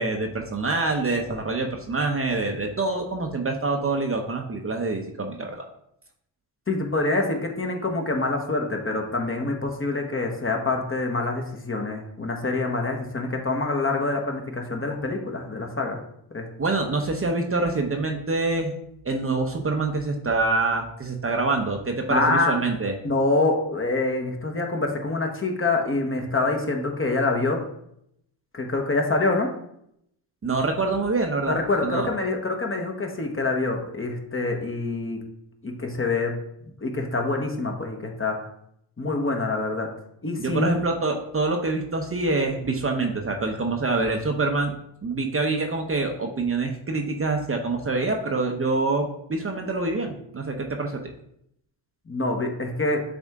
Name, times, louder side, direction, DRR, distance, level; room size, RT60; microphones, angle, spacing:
voice 1, 0.0-5.7 16.6-18.7 19.0-22.9 30.4-32.1 40.4-44.8 45.0-51.0, right 3 dB, 30° right, 3 dB, 0.8 m, -26 dB
voice 2, 6.7-16.0 16.3-16.5 22.1-22.6 23.0-27.6 28.5-29.5 31.5-35.2 35.6-36.3 36.8-38.4 39.0-39.9 40.2-40.8 52.1-53.0, left 3 dB, 25° left, 2 dB, 1.2 m, -26 dB
7.3 x 3.5 x 3.6 m, 0.75 s
cardioid pair, 70°, 46 cm